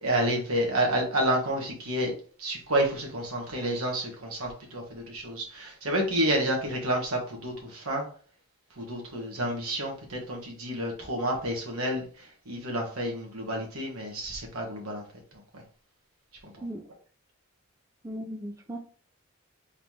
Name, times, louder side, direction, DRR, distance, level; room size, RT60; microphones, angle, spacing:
voice 1, 0.0-2.1 2.4-8.1 8.8-15.0 16.4-16.6, right 1 dB, 80° right, 1 dB, 1.3 m, -29 dB
voice 2, 18.0-18.8, right 1 dB, 15° right, 2 dB, 0.4 m, -37 dB
3.7 x 3.1 x 3.6 m, 0.44 s
head